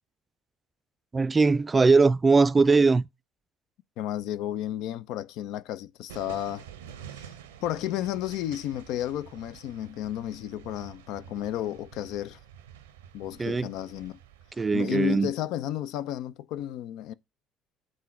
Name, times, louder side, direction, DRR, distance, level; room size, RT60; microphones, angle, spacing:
voice 1, 1.1-3.1 13.4-13.7 14.6-15.3, right 4 dB, 25° right, 0.4 m, -20 dB
voice 2, 4.0-6.7 7.1-7.3 7.6-12.4 13.1-14.2 14.7-17.1, left 12 dB, 60° left, 0.5 m, -32 dB
sound 1, 6.1-14.5, right 9 dB, 75° right, 0.8 m, -48 dB
7.8 x 3.8 x 5.9 m
figure-of-eight pair, 55°, 0 cm